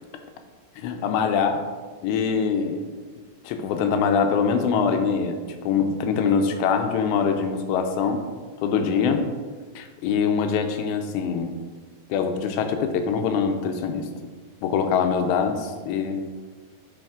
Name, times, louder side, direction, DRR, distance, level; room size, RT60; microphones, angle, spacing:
voice 1, 0.8-1.6 2.0-2.8 3.4-5.4 5.7-8.2 8.6-9.3 9.8-11.5 12.1-14.1 14.6-16.2, left 6 dB, 85° left, 6 dB, 2.8 m, -23 dB
7.9 x 4.7 x 3.6 m, 1.5 s
omnidirectional pair, 5.0 m